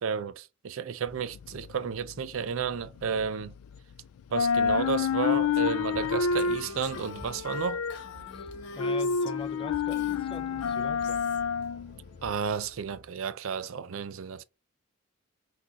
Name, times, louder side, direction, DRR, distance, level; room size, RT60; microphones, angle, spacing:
voice 1, 0.0-3.5 4.3-7.8 12.2-14.4, right 6 dB, 65° right, 0.4 m, -32 dB
sound 1, 1.1-3.9 4.2-12.4, left 6 dB, 80° left, 0.3 m, -29 dB
sound 2, 4.5-13.1, equal, 25° right, 1.7 m, -52 dB
Female speech woman speaking, 6.4-9.6 9.9-11.4, left 4 dB, 55° left, 1.2 m, -48 dB
voice 2, 8.3-11.2, left 3 dB, 25° left, 0.5 m, -42 dB
6.1 x 2.4 x 2.8 m
head